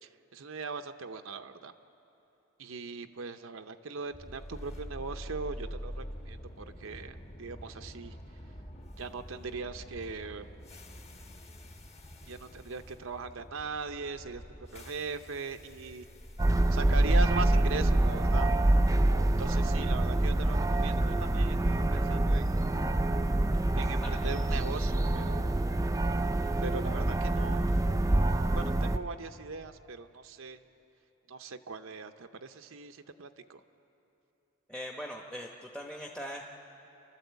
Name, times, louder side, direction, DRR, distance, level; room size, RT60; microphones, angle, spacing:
voice 1, 0.0-1.7 2.6-8.2 9.0-10.5 12.3-16.1 16.7-18.6 19.4-22.6 23.8-25.5 26.6-27.8 28.5-30.6 31.3-33.6, right 4 dB, 75° right, 7 dB, 0.7 m, -40 dB
sound 1, 4.1-22.2, equal, 30° left, 1.4 m, -45 dB
sound 2, 16.4-29.0, right 1 dB, 15° right, 0.5 m, -26 dB
voice 2, 34.7-36.5, equal, 5° left, -1 dB, 0.9 m, -41 dB
29.5 x 12.5 x 8.1 m, 2.9 s
head